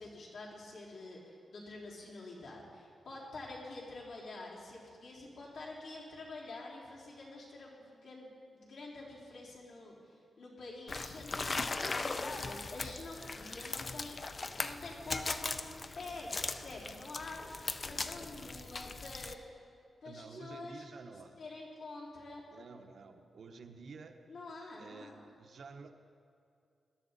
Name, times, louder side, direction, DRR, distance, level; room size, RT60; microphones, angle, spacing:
voice 1, 0.0-17.4 17.8-19.4 20.0-20.9 21.4-22.4 24.3-25.2, left 2 dB, 75° left, -6 dB, 3.7 m, -47 dB
sound 1, 10.9-19.3, left 3 dB, 35° left, 0.5 m, -39 dB
voice 2, 20.0-21.4 22.5-24.2 24.8-25.1 25.4-25.9, right 4 dB, 60° right, 6 dB, 0.9 m, -50 dB
20.0 x 12.0 x 4.1 m, 2.4 s
wide cardioid pair, 140°, 0 cm